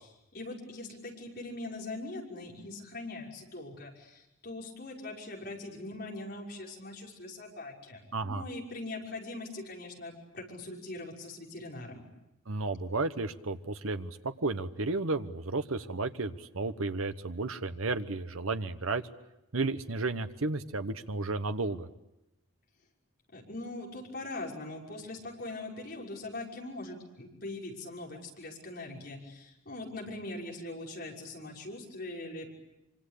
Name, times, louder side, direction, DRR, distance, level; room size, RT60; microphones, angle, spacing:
voice 1, 0.3-12.1 23.3-32.5, left 2 dB, 50° left, -2 dB, 6.0 m, -41 dB
voice 2, 8.1-8.4 12.5-19.0 19.5-21.9, right 3 dB, 85° right, 10 dB, 1.1 m, -33 dB
25.5 x 25.0 x 8.5 m, 0.90 s
head